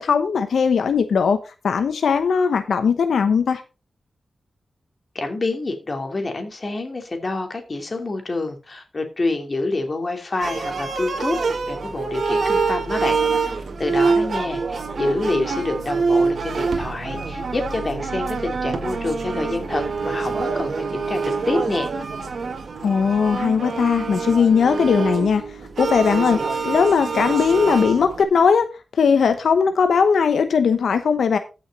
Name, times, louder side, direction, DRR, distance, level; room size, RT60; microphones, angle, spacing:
voice 1, 0.0-1.4 1.6-3.6 22.8-25.4 25.8-26.4 26.6-28.7 28.9-31.4, left 6 dB, 85° left, 0.8 m, -18 dB
voice 2, 5.1-11.4 11.7-21.9, left 2 dB, 40° left, 2.7 m, -27 dB
sound 1, 10.4-28.2, right 4 dB, 65° right, 1.7 m, -25 dB
14.5 x 6.3 x 4.1 m
wide cardioid pair, 95°, 0 cm